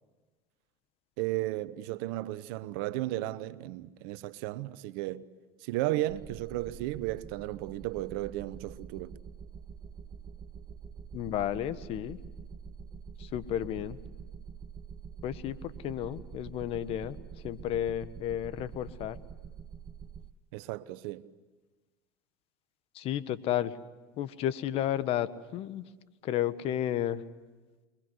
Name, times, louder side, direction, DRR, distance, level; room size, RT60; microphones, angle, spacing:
voice 1, 1.2-5.2 5.6-9.1 20.5-21.2, right 16 dB, 70° right, 1.1 m, -34 dB
sound 1, 6.1-20.3, right 7 dB, 30° right, 1.0 m, -46 dB
voice 2, 11.1-12.2 13.2-14.0 15.2-17.2 17.4-19.2 22.9-23.8 24.2-25.9 26.2-27.2, left 11 dB, 55° left, 1.4 m, -32 dB
27.5 x 23.5 x 8.0 m
hypercardioid pair, 95°, 12 cm